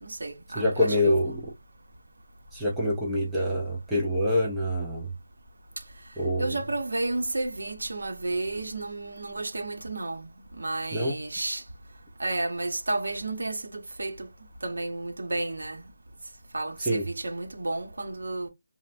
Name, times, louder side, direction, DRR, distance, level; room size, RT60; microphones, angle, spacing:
voice 1, 0.0-1.3 6.4-10.3 10.6-11.6 12.2-14.3 14.6-15.9 16.5-18.5, right 2 dB, 60° right, 0.8 m, -32 dB
voice 2, 0.6-1.4 2.5-5.1 6.2-6.6 10.9-11.2 16.8-17.0, left 1 dB, ahead, 0.3 m, -26 dB
3.2 x 2.1 x 2.4 m
figure-of-eight pair, 180°, 0 cm